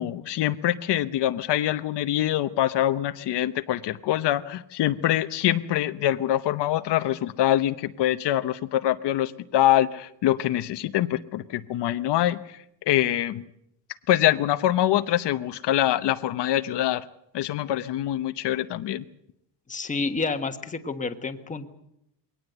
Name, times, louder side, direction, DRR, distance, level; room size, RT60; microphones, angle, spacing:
voice 1, 0.0-12.6 12.9-13.4 14.1-17.1 17.3-19.0, left 13 dB, 65° left, 10 dB, 0.9 m, -24 dB
voice 2, 19.7-21.7, left 4 dB, 15° left, 6 dB, 1.4 m, -29 dB
22.5 x 18.0 x 8.0 m, 0.76 s
cardioid pair, 175°, 44 cm